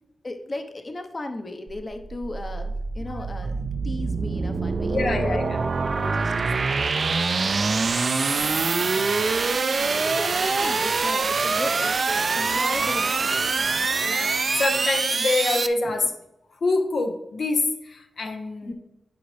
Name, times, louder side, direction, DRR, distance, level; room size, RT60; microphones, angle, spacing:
voice 1, 0.2-3.6 3.8-5.4 5.6-6.9 7.1-13.2 15.8-16.0 18.7-18.8, left 2 dB, 45° left, 5 dB, 0.9 m, -37 dB
sound 1, 1.7-15.7, right 4 dB, 60° right, 0.5 m, -24 dB
voice 2, 4.9-5.6 6.0-6.1 7.6-7.7 9.0-9.4 14.0-16.1 16.6-18.7, left 3 dB, 75° left, 4 dB, 0.7 m, -26 dB
10.0 x 5.1 x 3.3 m, 0.87 s
cardioid pair, 65°, 0 cm